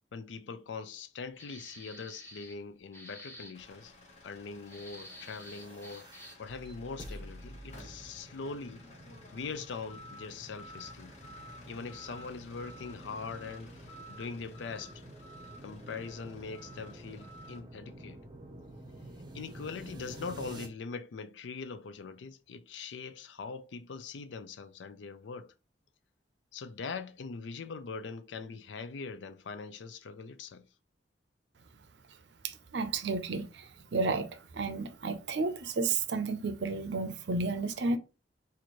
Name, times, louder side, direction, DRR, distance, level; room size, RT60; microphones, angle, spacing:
voice 1, 0.1-3.9 4.2-6.1 6.4-8.8 9.3-11.1 11.7-13.7 14.1-15.0 15.6-18.2 19.3-25.5 26.5-30.7, left 4 dB, 80° left, 0.4 m, -42 dB
sound 1, 1.4-2.6 2.9-3.5 4.6-6.5, equal, 15° left, 1.0 m, -50 dB
sound 2, 3.5-17.6, left 1 dB, 40° left, 0.9 m, -53 dB
sound 3, 4.9-20.7, right 1 dB, 25° right, 0.7 m, -49 dB
voice 2, 32.4-34.3 34.5-38.0, right 3 dB, 70° right, 0.5 m, -32 dB
4.2 x 2.5 x 3.0 m
head